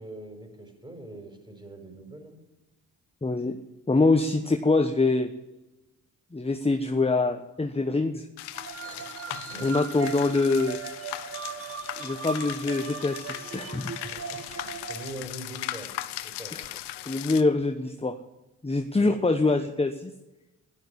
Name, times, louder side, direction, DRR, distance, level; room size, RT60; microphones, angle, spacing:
voice 1, 0.0-2.4 8.7-10.0 14.0-15.9 16.2-16.6 18.9-19.2, right 1 dB, 10° right, 5 dB, 5.4 m, -43 dB
voice 2, 3.2-3.6 3.9-5.3 6.3-8.3 9.6-10.8 12.0-13.9 16.5-16.6 17.1-18.2 18.6-20.1, left 3 dB, 15° left, 7 dB, 1.1 m, -24 dB
sound 1, 8.4-17.4, left 14 dB, 70° left, 0.9 m, -38 dB
sound 2, 8.5-15.1, right 7 dB, 35° right, 0.9 m, -39 dB
12.0 x 12.0 x 8.7 m, 1.0 s
hypercardioid pair, 45°, 41 cm